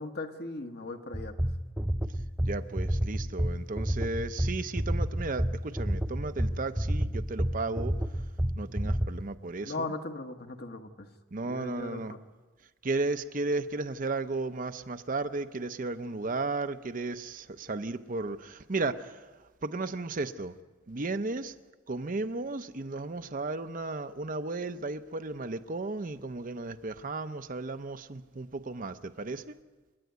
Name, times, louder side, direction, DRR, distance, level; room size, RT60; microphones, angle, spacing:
voice 1, 0.0-1.3 9.6-11.1 11.4-12.2, left 3 dB, 55° left, 1.5 m, -38 dB
sound 1, 1.1-9.1, equal, 5° right, 0.6 m, -29 dB
voice 2, 2.4-7.9 8.6-9.7 11.3-12.1 12.8-19.1 19.6-20.5 20.9-21.5 21.9-29.5, right 3 dB, 45° right, 0.7 m, -34 dB
29.0 x 10.5 x 9.4 m
head